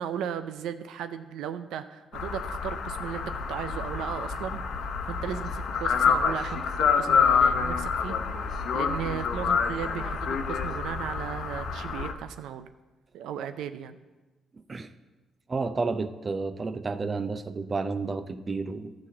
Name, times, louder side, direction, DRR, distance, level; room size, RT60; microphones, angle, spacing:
voice 1, 0.0-12.7 13.1-14.0, right 9 dB, 85° right, 11 dB, 0.4 m, -36 dB
sound 1, 2.1-12.1, left 6 dB, 65° left, 0.8 m, -27 dB
voice 2, 14.5-14.9 15.5-18.9, right 4 dB, 30° right, 11 dB, 0.6 m, -31 dB
11.5 x 4.2 x 7.3 m, 1.2 s
cardioid pair, 90°, 0 cm